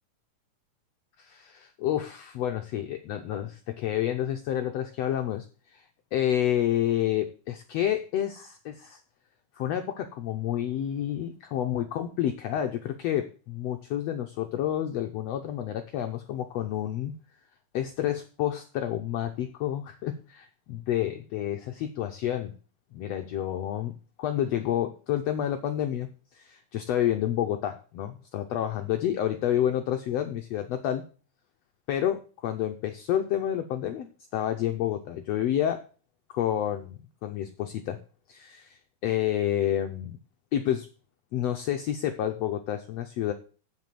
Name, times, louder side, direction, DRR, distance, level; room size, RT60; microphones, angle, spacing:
voice 1, 1.2-5.5 5.7-5.8 6.1-9.0 9.5-17.2 17.7-22.5 22.9-31.1 31.9-35.8 36.3-38.0 38.3-40.2 40.5-40.9 41.3-43.3, left 11 dB, 85° left, 6 dB, 1.5 m, -29 dB
7.7 x 7.6 x 7.5 m, 0.38 s
omnidirectional pair, 3.8 m